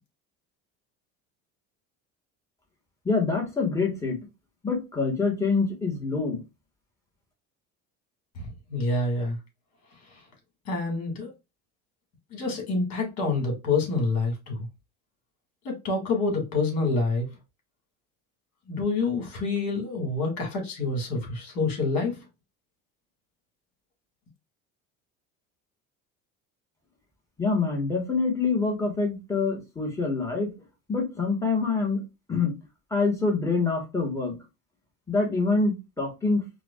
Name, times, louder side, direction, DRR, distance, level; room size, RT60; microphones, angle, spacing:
voice 1, 3.0-4.2 4.6-6.4 27.4-30.5 30.9-32.0 32.3-32.5 32.9-34.3 35.1-36.5, left 4 dB, 10° left, 1.5 m, -26 dB
voice 2, 8.4-9.4 10.1-10.2 10.7-11.3 12.3-14.7 15.6-17.3 18.7-22.2, left 3 dB, 55° left, 2.2 m, -27 dB
4.8 x 2.4 x 2.4 m
cardioid pair, 130°, 31 cm